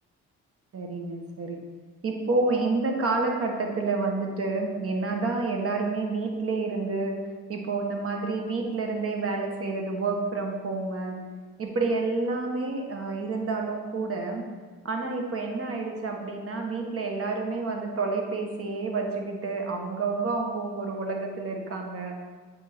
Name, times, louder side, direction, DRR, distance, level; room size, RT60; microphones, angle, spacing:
voice 1, 0.7-1.6 2.0-7.1 7.5-11.2 11.6-14.4 14.8-22.2, right 3 dB, 50° right, 2 dB, 1.3 m, -29 dB
7.5 x 3.6 x 4.3 m, 1.5 s
cardioid pair, 90°, 30 cm